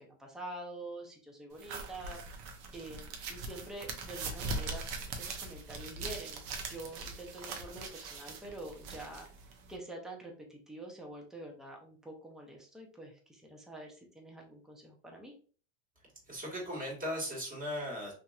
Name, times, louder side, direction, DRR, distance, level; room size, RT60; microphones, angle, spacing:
voice 1, 0.0-2.2 2.7-4.9 5.2-9.3 9.7-15.3, right 1 dB, ahead, 1 dB, 0.6 m, -46 dB
sound 1, 1.6-9.8, right 3 dB, 55° right, 0.8 m, -41 dB
voice 2, 16.2-18.1, equal, 20° right, -2 dB, 1.5 m, -37 dB
3.0 x 2.6 x 2.3 m, 0.40 s
supercardioid pair, 110°, 39 cm